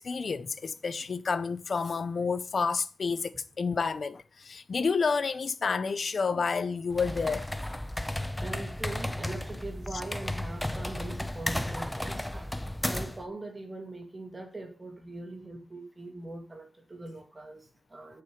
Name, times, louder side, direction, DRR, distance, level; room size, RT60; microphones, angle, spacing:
voice 1, 0.0-7.5, left 5 dB, 50° left, 0.6 m, -30 dB
sound 1, 6.9-13.2, left 1 dB, 10° left, 0.5 m, -34 dB
voice 2, 8.4-18.2, right 2 dB, 25° right, 2.3 m, -42 dB
9.7 x 5.8 x 5.0 m
wide cardioid pair, 165°, 0 cm